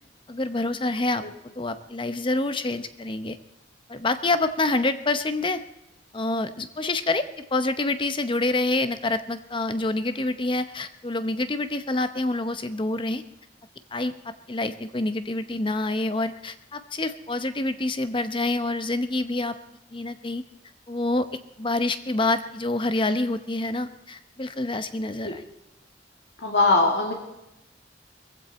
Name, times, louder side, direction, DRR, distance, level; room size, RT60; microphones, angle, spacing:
voice 1, 0.3-1.2 1.6-3.4 3.9-5.6 6.1-13.2 13.9-19.6 19.9-20.4 20.9-21.3 21.6-25.4, left 2 dB, 30° left, 11 dB, 0.8 m, -27 dB
voice 2, 26.4-27.1, left 3 dB, 70° left, 0 dB, 2.3 m, -20 dB
20.5 x 15.5 x 4.2 m, 0.90 s
head